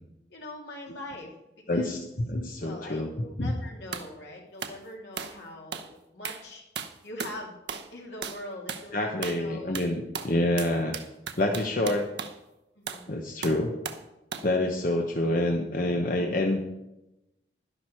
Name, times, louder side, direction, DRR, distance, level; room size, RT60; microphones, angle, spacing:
voice 1, 0.3-1.3 1.7-2.0 2.6-6.6 7.0-7.6 7.9-9.8 11.5-11.9 12.7-13.1, left 1 dB, 75° left, -1 dB, 3.0 m, -42 dB
voice 2, 1.7-3.1 3.4-3.5 8.9-11.0 11.4-12.1 13.1-13.7 14.4-16.6, left 1 dB, 50° left, 2 dB, 1.0 m, -27 dB
sound 1, 3.9-4.1 4.6-4.8 5.2-5.4 5.7-5.9 6.2-6.5 6.8-7.4 7.7-7.9 8.2-8.4 8.7-8.9 9.2-9.5 9.7-12.4 12.9-13.1 13.4-14.1 14.3-14.5, right 6 dB, 75° right, 0.9 m, -36 dB
11.5 x 11.0 x 4.5 m, 0.93 s
head